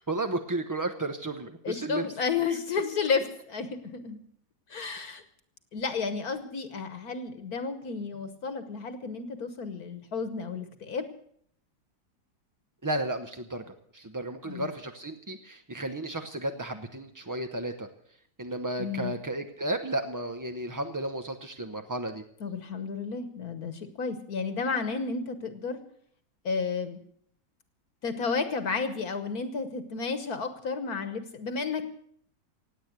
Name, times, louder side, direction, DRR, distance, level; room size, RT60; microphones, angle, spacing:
voice 1, 0.0-2.1 2.5-2.6 12.8-13.6 13.9-17.9 18.4-22.2, right 1 dB, 30° right, 6 dB, 0.3 m, -33 dB
voice 2, 1.6-4.2 4.7-5.2 5.7-11.1 14.5-14.7 18.8-19.1 22.4-25.8 26.4-27.0 28.0-31.8, left 5 dB, 60° left, 10 dB, 1.6 m, -32 dB
17.0 x 8.8 x 7.9 m, 0.63 s
omnidirectional pair, 1.9 m